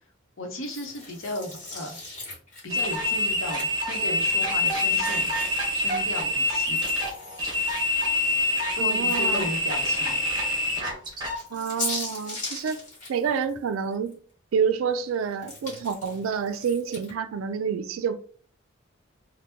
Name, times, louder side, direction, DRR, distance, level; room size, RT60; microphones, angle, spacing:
voice 1, 0.4-2.0 2.6-5.3 5.7-6.8 8.7-10.2, left 1 dB, 75° left, 0.8 m, -35 dB
sound 1, 0.6-4.0 4.5-9.7 10.1-10.2 11.1-14.1 14.5-17.1, left 2 dB, 35° left, 1.4 m, -39 dB
sound 2, 2.7-11.4, left 2 dB, 20° right, 0.9 m, -26 dB
voice 2, 8.8-9.5 11.5-12.8 13.1-14.1 14.5-18.2, right 6 dB, 75° right, 0.3 m, -28 dB
2.9 x 2.1 x 3.4 m
head